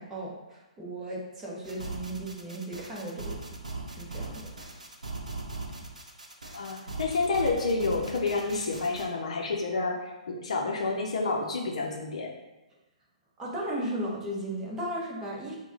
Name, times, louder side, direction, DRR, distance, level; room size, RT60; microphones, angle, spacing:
voice 1, 0.0-3.3 4.0-4.5 13.4-15.5, right 1 dB, 10° right, -5 dB, 1.0 m, -35 dB
sound 1, 1.6-9.1, right 3 dB, 70° right, 0.7 m, -40 dB
voice 2, 6.5-12.3, left 3 dB, 55° left, 1 dB, 0.7 m, -29 dB
4.7 x 2.2 x 3.8 m, 1.0 s
figure-of-eight pair, 120°, 4 cm